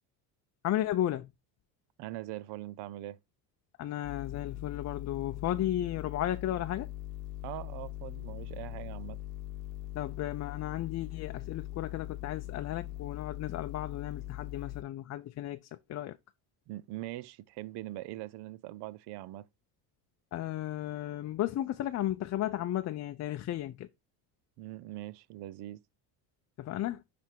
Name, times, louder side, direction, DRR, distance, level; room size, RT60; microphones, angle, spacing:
voice 1, 0.6-1.3 3.8-6.9 9.9-16.2 20.3-23.9 26.6-27.0, left 13 dB, 40° left, 0.5 m, -34 dB
voice 2, 2.0-3.2 7.4-9.2 16.7-19.5 24.6-25.8, right 16 dB, 65° right, 0.7 m, -42 dB
sound 1, 4.0-14.8, left 16 dB, 75° left, 0.9 m, -41 dB
10.5 x 3.5 x 4.5 m
cardioid pair, 115°, 44 cm